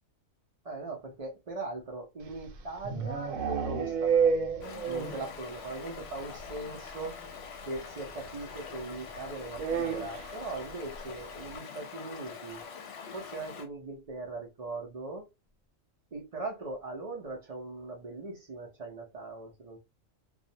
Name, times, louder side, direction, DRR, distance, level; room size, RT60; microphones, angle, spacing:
voice 1, 0.6-4.5 4.9-7.2 7.7-12.6 13.1-15.3 16.1-19.8, right 3 dB, 60° right, 0.4 m, -40 dB
sound 1, 2.3-5.3 5.6-5.7 6.0-6.1 6.4-6.5 7.7-7.8 9.5-10.4, right 6 dB, 80° right, 1.0 m, -29 dB
Stream, 4.6-13.6, left 6 dB, 60° left, 0.8 m, -44 dB
2.3 x 2.0 x 2.6 m
omnidirectional pair, 1.4 m